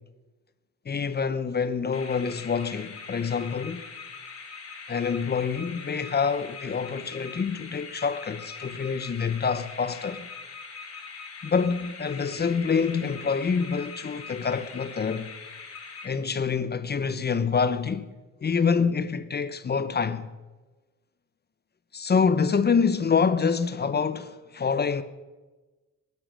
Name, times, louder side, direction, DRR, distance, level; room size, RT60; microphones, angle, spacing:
voice 1, 0.9-3.8 4.9-10.3 11.4-15.3 16.0-18.1 18.4-20.3 21.9-25.0, left 5 dB, 35° left, 0.9 m, -26 dB
sound 1, 1.9-16.6, left 5 dB, 50° left, 4.1 m, -42 dB
17.0 x 12.0 x 6.5 m
cardioid pair, 90°, 30 cm